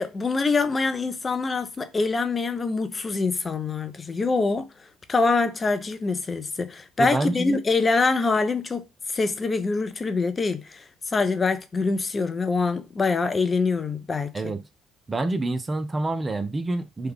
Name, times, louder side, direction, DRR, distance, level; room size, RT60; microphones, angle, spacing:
voice 1, 0.0-4.7 5.1-8.8 9.1-14.5, left 4 dB, 30° left, 0.5 m, -25 dB
voice 2, 7.0-7.6 14.3-14.6 15.1-17.1, right 2 dB, 25° right, 0.5 m, -27 dB
3.3 x 2.2 x 3.5 m
hypercardioid pair, 55°, 0 cm